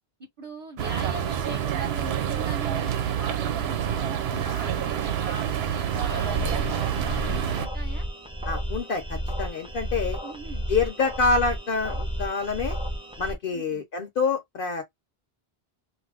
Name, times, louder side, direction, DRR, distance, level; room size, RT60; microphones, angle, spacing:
voice 1, 0.4-8.0 10.2-10.7 13.5-13.8, right 2 dB, 35° right, 0.9 m, -40 dB
sound 1, 0.8-7.7, right 9 dB, 90° right, 0.8 m, -27 dB
sound 2, 6.0-13.3, equal, 5° right, 0.5 m, -32 dB
voice 2, 8.4-10.2 10.7-12.8 13.2-14.8, left 4 dB, 60° left, 0.9 m, -26 dB
2.6 x 2.4 x 3.3 m
omnidirectional pair, 1.0 m